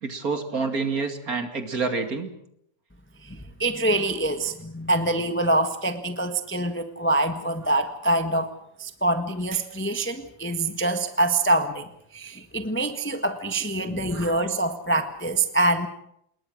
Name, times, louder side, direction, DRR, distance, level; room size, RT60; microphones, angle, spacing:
voice 1, 0.0-2.3 7.5-7.6 13.8-14.4, right 4 dB, 40° right, 6 dB, 2.7 m, -29 dB
voice 2, 3.2-8.5 8.8-15.9, right 2 dB, 5° left, 7 dB, 1.0 m, -25 dB
28.0 x 21.0 x 6.5 m, 0.75 s
omnidirectional pair, 2.4 m